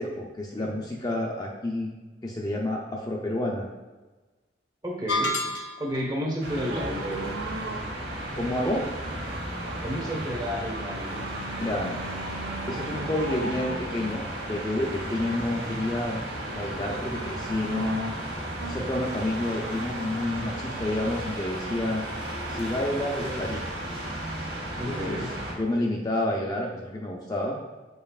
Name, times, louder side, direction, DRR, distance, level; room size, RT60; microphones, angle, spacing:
voice 1, 0.0-1.9 2.2-3.7 8.3-8.8 11.6-12.0 12.7-18.0 18.6-22.1 22.5-23.7 24.7-25.2 25.5-27.6, left 1 dB, 20° left, -2 dB, 0.5 m, -29 dB
voice 2, 4.8-7.5 9.8-11.3 24.8-25.3, equal, 20° right, -2 dB, 1.2 m, -32 dB
sound 1, 5.1-6.1, left 1 dB, 80° left, 0.6 m, -28 dB
sound 2, 6.4-25.5, right 1 dB, 85° right, 1.7 m, -34 dB
sound 3, 6.7-20.3 21.0-21.1, right 2 dB, 65° right, 0.6 m, -40 dB
7.9 x 5.4 x 2.4 m, 1.2 s
head